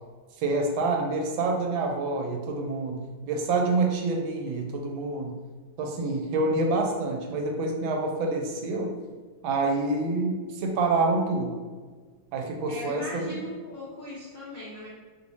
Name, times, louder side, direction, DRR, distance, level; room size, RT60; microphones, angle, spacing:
voice 1, 0.4-5.4 5.8-8.9 9.4-11.6 12.3-13.5, right 3 dB, 80° right, 2 dB, 1.3 m, -27 dB
voice 2, 12.7-14.9, left 1 dB, 70° left, -9 dB, 0.5 m, -38 dB
3.3 x 2.6 x 3.0 m, 1.4 s
omnidirectional pair, 2.2 m